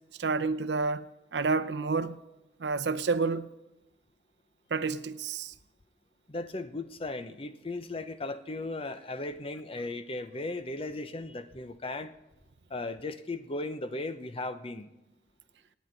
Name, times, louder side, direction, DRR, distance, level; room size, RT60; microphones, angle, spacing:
voice 1, 0.2-1.1 1.3-2.2 2.6-3.5 4.7-5.5, right 4 dB, 75° right, 0.6 m, -29 dB
voice 2, 6.3-12.1 12.7-14.9, left 2 dB, 30° left, 0.7 m, -36 dB
26.0 x 9.4 x 4.0 m
head